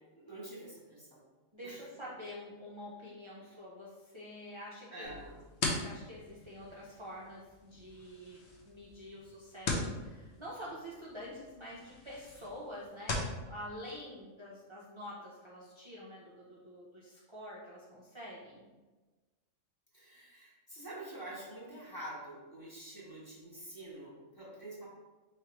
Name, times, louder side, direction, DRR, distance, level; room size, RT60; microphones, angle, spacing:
voice 1, 0.1-1.2 1.6-1.8 3.4-3.5 4.9-5.4 19.9-24.9, right 1 dB, 20° left, -6 dB, 1.0 m, -47 dB
voice 2, 1.5-5.1 5.7-13.2 13.5-18.7, equal, 35° right, -6 dB, 0.5 m, -47 dB
sound 1, 5.0-13.4, left 2 dB, 60° left, 0.9 m, -41 dB
4.6 x 3.2 x 2.9 m, 1.2 s
omnidirectional pair, 1.4 m